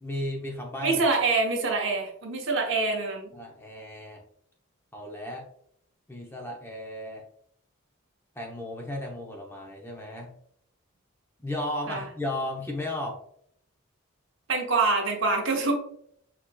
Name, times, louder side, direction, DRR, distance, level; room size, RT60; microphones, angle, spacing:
voice 1, 0.0-1.0 3.3-4.2 4.9-5.5 6.1-7.2 8.4-10.3 11.4-13.2, left 1 dB, 10° left, 0 dB, 0.6 m, -34 dB
voice 2, 0.8-3.3 11.9-12.0 14.5-15.7, right 3 dB, 60° right, 1 dB, 0.9 m, -25 dB
6.4 x 2.9 x 2.2 m, 0.68 s
head